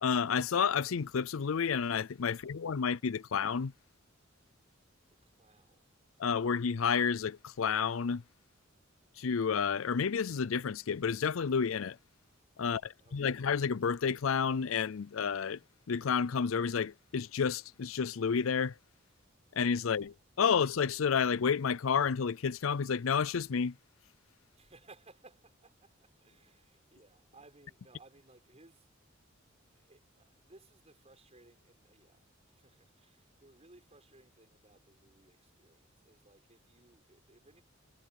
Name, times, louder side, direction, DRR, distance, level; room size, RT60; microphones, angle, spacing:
voice 1, 0.0-3.7 6.2-8.2 9.2-12.0 12.6-15.6 15.9-18.7 19.6-23.7, left 6 dB, 75° left, 0.5 m, -30 dB
voice 2, 5.2-5.8 12.6-13.4 19.8-20.0 24.5-28.9 29.7-37.6, right 2 dB, 30° right, 5.7 m, -61 dB
head